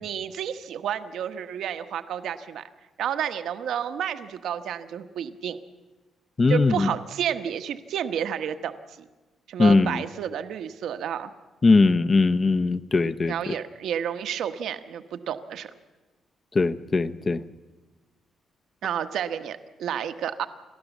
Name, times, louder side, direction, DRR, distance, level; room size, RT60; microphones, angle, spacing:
voice 1, 0.0-2.7 3.0-5.6 6.5-9.0 9.5-11.3 13.3-15.7 18.8-20.5, right 9 dB, 75° right, 10 dB, 1.1 m, -30 dB
voice 2, 6.4-6.9 9.6-10.0 11.6-13.6 16.5-17.4, left 3 dB, 25° left, 12 dB, 0.6 m, -20 dB
29.0 x 13.0 x 7.2 m, 1.2 s
cardioid pair, 160°, 0 cm